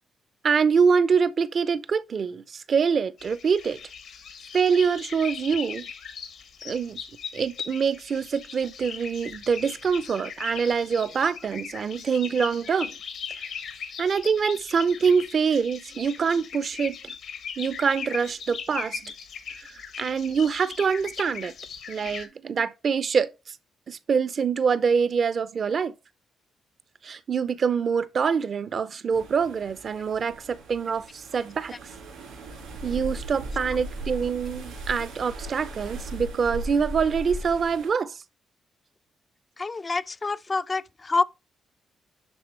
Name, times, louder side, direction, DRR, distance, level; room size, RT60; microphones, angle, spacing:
voice 1, 0.4-3.8 4.5-5.9 6.6-7.0 7.3-12.9 13.4-13.5 14.0-17.1 17.6-19.1 19.6-21.5 21.9-23.6 23.9-25.9 27.0-31.8 32.8-38.2, right 6 dB, 55° right, 0.6 m, -25 dB
sound 1, 3.2-22.3, left 7 dB, 75° left, 1.3 m, -39 dB
sound 2, 29.1-37.9, right 1 dB, 85° right, 3.6 m, -38 dB
voice 2, 39.6-41.2, left 3 dB, 35° left, 0.4 m, -27 dB
10.5 x 3.6 x 3.3 m
supercardioid pair, 60°, 0 cm